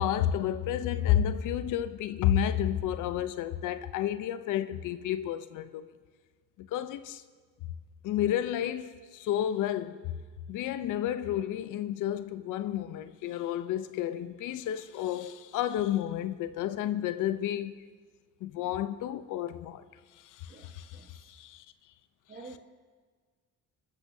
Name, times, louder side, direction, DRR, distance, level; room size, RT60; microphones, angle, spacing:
voice 1, 0.0-5.9 6.6-7.2 8.0-10.1 10.5-17.7 18.4-19.8 20.2-21.6, left 11 dB, 90° left, 0.7 m, -31 dB
voice 2, 20.5-21.3 22.3-22.6, right 3 dB, 30° right, 1.4 m, -49 dB
28.5 x 13.0 x 2.7 m
cardioid pair, 90°, 30 cm